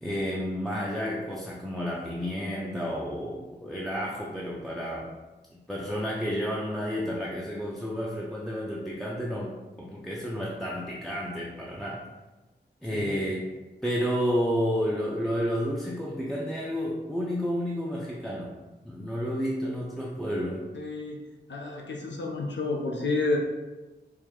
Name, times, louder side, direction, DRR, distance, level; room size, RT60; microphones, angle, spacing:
voice 1, 0.0-5.1 5.5-9.5 9.8-12.1 12.8-13.4 13.8-18.6 18.8-20.7, equal, ahead, -5 dB, 0.5 m, -31 dB
voice 2, 12.9-13.2 20.7-21.2 21.5-23.4, left 3 dB, 80° left, 0 dB, 0.6 m, -30 dB
4.6 x 2.0 x 3.6 m, 1.1 s
wide cardioid pair, 75°, 18 cm